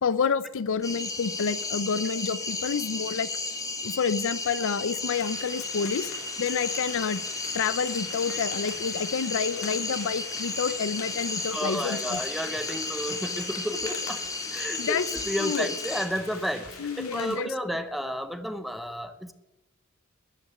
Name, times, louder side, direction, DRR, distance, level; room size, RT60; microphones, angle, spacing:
voice 1, 0.0-3.3 3.8-6.1 6.4-7.2 7.5-12.2 14.8-15.1 15.4-15.7 16.8-17.5, left 6 dB, 65° left, 16 dB, 0.5 m, -29 dB
sound 1, 0.8-16.1, left 3 dB, 15° left, 1.2 m, -33 dB
light forest rain, 5.1-17.4, left 4 dB, 85° left, 3.2 m, -43 dB
voice 2, 11.5-19.3, equal, ahead, 10 dB, 0.8 m, -32 dB
13.5 x 6.1 x 9.8 m, 0.98 s
head